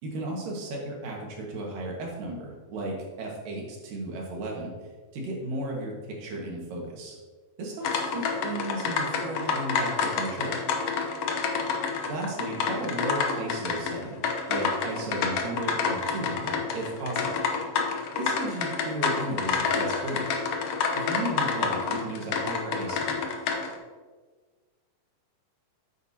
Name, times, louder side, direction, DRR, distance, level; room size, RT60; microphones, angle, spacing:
voice 1, 0.0-4.7 5.1-7.2 7.6-10.6 12.1-17.4 18.2-20.3 20.9-23.2, right 1 dB, 80° right, -1 dB, 3.3 m, -35 dB
sound 1, 7.8-23.8, left 5 dB, 80° left, 1.3 m, -29 dB
9.1 x 8.4 x 2.8 m, 1.4 s
omnidirectional pair, 3.9 m